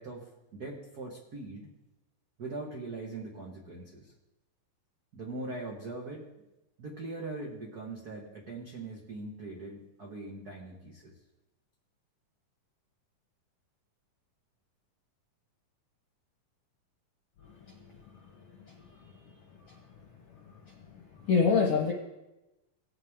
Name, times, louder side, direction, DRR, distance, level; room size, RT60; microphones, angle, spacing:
voice 1, 0.0-1.7 2.4-4.1 5.1-6.3 6.8-11.2, right 2 dB, 45° right, -3 dB, 1.4 m, -41 dB
voice 2, 17.7-18.0 18.7-19.0 19.7-19.8 20.7-20.8 21.2-21.9, left 5 dB, 60° left, 0 dB, 1.8 m, -27 dB
18.5 x 8.3 x 3.7 m, 0.97 s
omnidirectional pair, 3.9 m